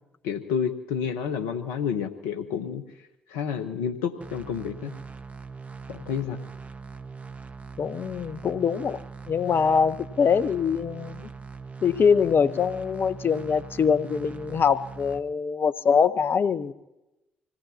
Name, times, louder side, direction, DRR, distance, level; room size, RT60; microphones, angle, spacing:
voice 1, 0.2-2.8 3.3-4.9 5.9-6.4, left 7 dB, 80° left, 6 dB, 1.1 m, -29 dB
sound 1, 4.2-15.2, right 5 dB, 30° right, 1.4 m, -41 dB
voice 2, 7.8-9.0 9.3-11.3 11.8-16.7, left 6 dB, 50° left, 12 dB, 1.0 m, -23 dB
25.5 x 18.5 x 2.9 m, 0.94 s
hypercardioid pair, 50°, 5 cm